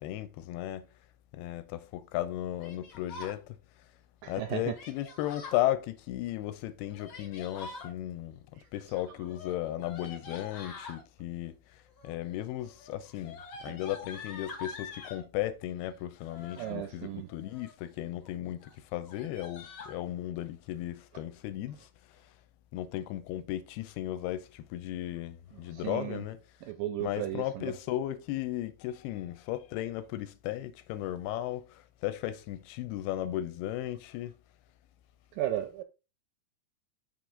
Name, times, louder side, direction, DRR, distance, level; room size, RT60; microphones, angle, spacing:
voice 1, 0.0-0.9 1.3-3.6 4.3-8.4 8.7-11.6 12.0-21.9 22.7-26.4 27.0-34.3, left 13 dB, 90° left, 2.6 m, -35 dB
Yell, 2.6-3.4 4.7-5.6 6.8-7.9 9.2-11.0 11.9-12.3 12.6-15.2 16.2-16.8 17.3-17.8 18.2-18.4 18.6-18.7 19.0-20.0, left 4 dB, 75° left, 1.2 m, -46 dB
voice 2, 4.2-4.8 8.6-8.7 13.7-13.8 16.6-17.3 25.5-26.2 26.6-27.7 35.3-35.8, right 13 dB, 80° right, 1.9 m, -35 dB
5.9 x 4.7 x 3.8 m
omnidirectional pair, 4.5 m